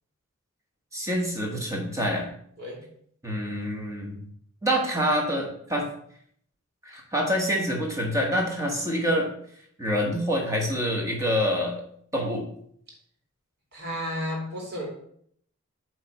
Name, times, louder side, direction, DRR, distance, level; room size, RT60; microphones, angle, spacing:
voice 1, 0.9-2.3 3.2-4.2 4.6-5.9 6.8-9.3 9.8-11.8 12.1-12.5, equal, 15° right, 0 dB, 1.3 m, -26 dB
voice 2, 13.7-14.9, equal, 50° right, -2 dB, 2.2 m, -32 dB
8.3 x 3.2 x 4.3 m, 0.65 s
head